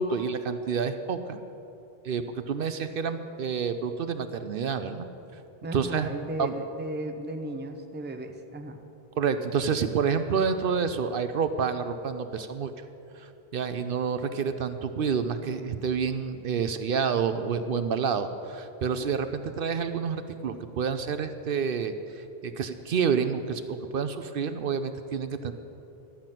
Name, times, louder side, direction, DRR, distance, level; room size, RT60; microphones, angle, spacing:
voice 1, 0.0-1.4 2.0-5.1 5.7-6.1 6.4-6.6 9.2-12.7 13.2-25.5, right 6 dB, 65° right, 9 dB, 0.7 m, -29 dB
voice 2, 5.6-8.8, right 1 dB, 15° right, 6 dB, 0.6 m, -35 dB
13.0 x 5.8 x 9.0 m, 2.8 s
omnidirectional pair, 1.0 m